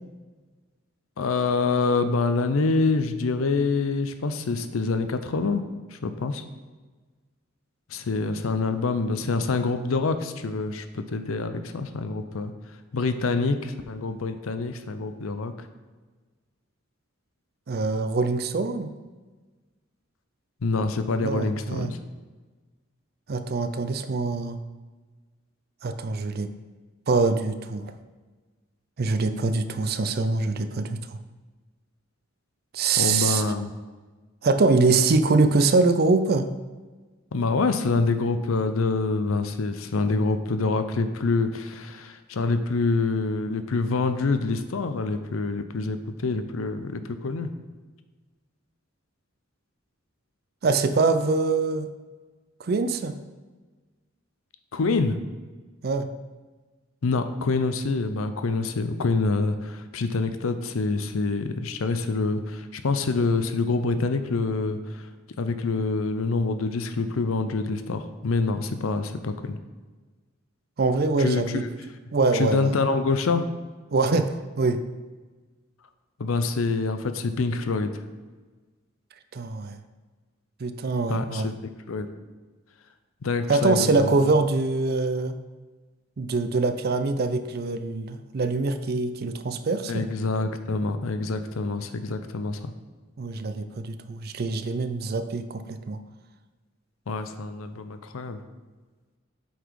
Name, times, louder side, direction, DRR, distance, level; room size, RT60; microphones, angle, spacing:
voice 1, 1.2-5.6 5.9-6.4 7.9-12.5 12.9-15.7 20.6-22.0 33.0-33.7 37.3-47.5 54.7-55.2 57.0-65.1 65.4-69.6 71.2-71.7 72.3-73.4 76.2-78.0 81.1-81.5 81.9-82.1 83.2-84.2 89.9-92.7 97.1-98.4, left 3 dB, 85° left, 9 dB, 0.6 m, -26 dB
voice 2, 17.7-18.9 21.1-21.9 23.3-24.6 25.8-26.5 27.1-27.9 29.0-31.2 32.7-33.4 34.4-36.5 50.6-51.9 52.6-53.2 55.8-56.1 70.8-71.6 72.1-72.7 73.9-74.8 79.3-79.8 80.6-81.5 83.5-85.4 86.2-90.1 93.2-96.0, right 3 dB, 50° right, 10 dB, 0.4 m, -24 dB
8.2 x 4.0 x 4.7 m, 1.3 s
head